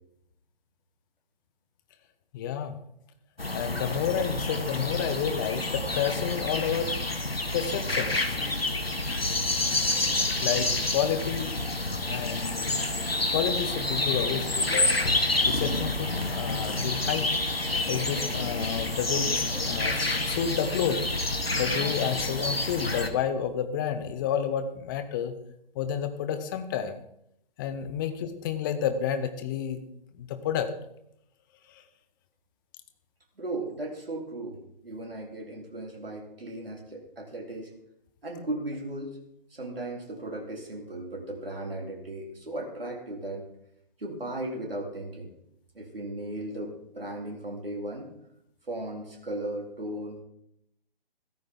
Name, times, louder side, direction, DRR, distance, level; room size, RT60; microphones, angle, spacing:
voice 1, 2.3-2.8 3.5-6.9 7.5-8.4 10.4-11.5 12.1-12.8 13.3-14.9 15.5-17.3 17.9-21.0 21.6-25.3 25.7-27.0 27.6-29.8 30.1-30.7, left 8 dB, 20° left, 10 dB, 1.1 m, -30 dB
sound 1, 3.4-23.1, left 2 dB, 90° left, 1.7 m, -28 dB
voice 2, 33.4-37.7 38.2-39.1 39.5-43.4 44.0-45.3 45.7-48.1 48.7-50.2, right 1 dB, 75° right, -1 dB, 4.1 m, -36 dB
15.5 x 13.5 x 3.9 m, 0.75 s
figure-of-eight pair, 140°, 29 cm